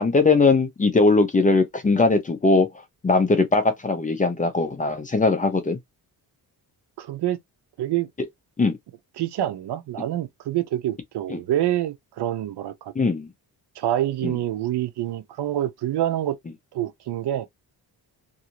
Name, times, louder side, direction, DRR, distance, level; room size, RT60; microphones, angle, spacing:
voice 1, 0.0-2.7 3.0-5.8 8.6-8.8 11.3-11.4 13.0-13.3 14.2-14.3, left 3 dB, 20° left, 0.5 m, -20 dB
voice 2, 7.0-7.4 7.8-8.1 9.2-12.7 13.8-16.4 16.7-17.5, right 12 dB, 85° right, 0.7 m, -26 dB
2.6 x 2.4 x 2.9 m
wide cardioid pair, 150°, 39 cm